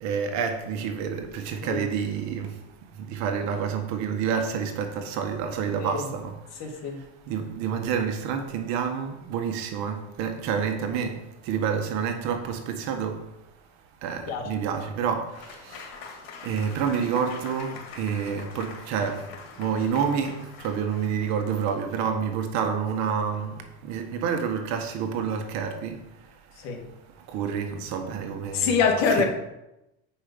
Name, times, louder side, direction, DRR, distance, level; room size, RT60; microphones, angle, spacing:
voice 1, 0.0-2.5 3.0-6.3 7.3-11.2 11.5-13.2 14.0-15.3 15.7-15.8 16.4-19.2 19.6-26.0 27.3-28.8 29.1-29.2, right 7 dB, 60° right, 1.5 m, -28 dB
voice 2, 6.6-7.0 14.3-14.4 26.6-26.8 28.5-29.2, left 6 dB, 60° left, 1.9 m, -24 dB
Applause / Crowd, 15.3-22.2, left 5 dB, 85° left, 2.2 m, -44 dB
8.0 x 5.5 x 5.3 m
supercardioid pair, 125°, 30 cm